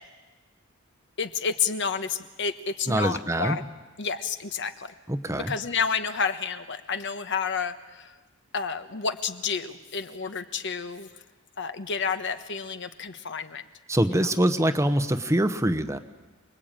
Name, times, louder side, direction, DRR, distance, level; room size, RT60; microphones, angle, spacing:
voice 1, 1.2-3.6 4.0-4.9 5.3-8.1 8.5-11.1 11.6-13.6 14.0-14.3, left 6 dB, 60° left, 9 dB, 1.2 m, -30 dB
voice 2, 2.9-3.6 5.1-5.5 13.9-16.0, right 1 dB, 15° right, 10 dB, 1.0 m, -24 dB
28.0 x 20.5 x 8.9 m, 1.2 s
head